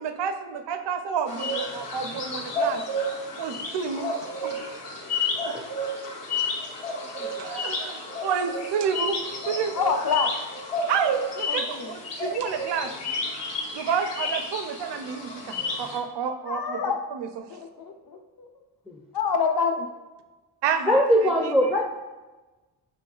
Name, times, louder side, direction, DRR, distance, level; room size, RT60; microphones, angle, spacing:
voice 1, 0.0-2.8 3.4-4.1 4.4-4.8 7.4-9.2 9.5-9.7 10.9-12.9 13.7-17.5 20.6-21.0 21.4-21.5, right 7 dB, 75° right, 8 dB, 0.6 m, -29 dB
sound 1, 1.3-16.0, left 2 dB, 80° left, 1.4 m, -31 dB
voice 2, 9.8-10.3 11.5-11.9 16.5-17.0 17.5-18.5 19.1-19.9, left 5 dB, 60° left, 4 dB, 0.7 m, -27 dB
voice 3, 20.9-21.8, equal, ahead, 1 dB, 0.4 m, -22 dB
7.6 x 3.0 x 2.3 m, 1.2 s
cardioid pair, 80°, 42 cm